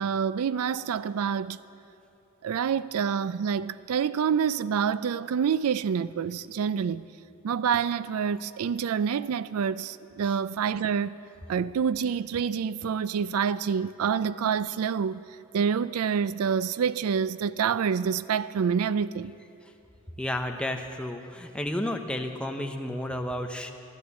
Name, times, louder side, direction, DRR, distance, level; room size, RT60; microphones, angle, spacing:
voice 1, 0.0-1.6 2.4-7.0 7.4-11.1 11.5-15.2 15.5-19.3, right 7 dB, 85° right, 0.4 m, -27 dB
voice 2, 20.2-23.7, left 1 dB, 5° left, 0.8 m, -32 dB
14.0 x 12.5 x 8.2 m
head